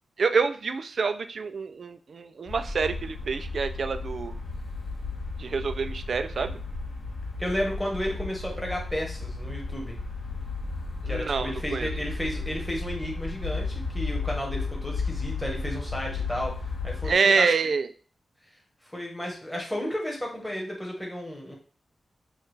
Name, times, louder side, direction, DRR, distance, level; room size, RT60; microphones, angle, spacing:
voice 1, 0.2-4.4 5.4-6.6 11.0-11.9 17.0-17.9, right 5 dB, 55° right, 10 dB, 0.3 m, -27 dB
sound 1, 2.5-17.1, left 3 dB, 80° left, 1.7 m, -34 dB
voice 2, 7.4-10.0 11.1-16.5 16.8-17.5 18.8-21.5, equal, 5° left, -1 dB, 1.1 m, -33 dB
6.4 x 2.3 x 3.2 m, 0.40 s
wide cardioid pair, 180°, 0 cm